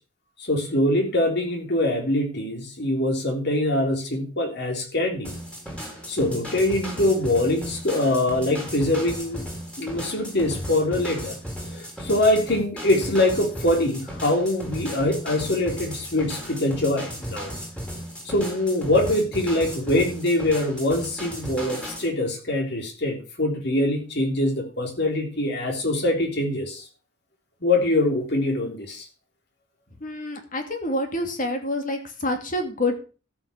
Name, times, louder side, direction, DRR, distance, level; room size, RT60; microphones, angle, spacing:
voice 1, 0.4-5.3 6.1-9.4 9.8-11.4 11.6-17.5 18.3-26.8 27.6-29.1, left 1 dB, 60° left, 2 dB, 3.6 m, -23 dB
sound 1, 5.2-22.1, equal, 5° left, 4.3 m, -35 dB
voice 2, 30.0-33.1, left 1 dB, 45° left, 5 dB, 2.5 m, -27 dB
13.5 x 6.3 x 6.2 m, 0.36 s
head